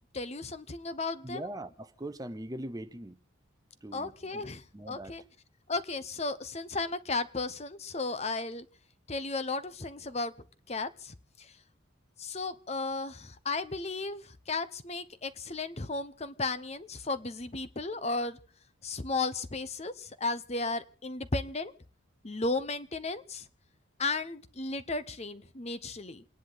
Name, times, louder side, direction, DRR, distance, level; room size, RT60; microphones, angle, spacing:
voice 1, 0.1-1.5 3.9-5.2 5.7-8.6 9.1-10.3 10.7-11.5 12.2-18.4 18.8-21.7 22.2-23.4 24.0-26.2, left 3 dB, 30° left, 0.8 m, -34 dB
voice 2, 1.2-3.2 3.8-4.5 4.7-5.2, right 1 dB, 20° right, 0.7 m, -41 dB
29.0 x 10.5 x 4.0 m
head